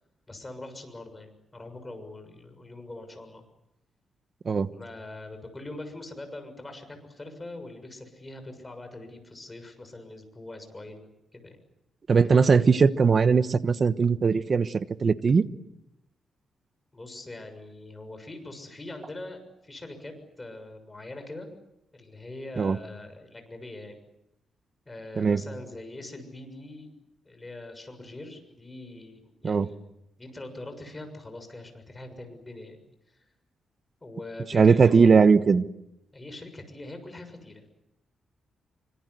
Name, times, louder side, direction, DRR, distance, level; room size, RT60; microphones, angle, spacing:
voice 1, 0.3-3.4 4.7-11.6 16.9-21.5 21.9-24.0 24.9-26.9 27.2-29.7 30.2-32.8 34.0-35.2 36.1-37.6, left 2 dB, 20° left, 7 dB, 6.7 m, -42 dB
voice 2, 12.1-15.5 22.6-22.8 25.2-25.4 29.4-29.7 34.5-35.6, right 5 dB, 45° right, 13 dB, 1.2 m, -20 dB
27.0 x 25.5 x 8.1 m, 0.86 s
cardioid pair, 110°, 0 cm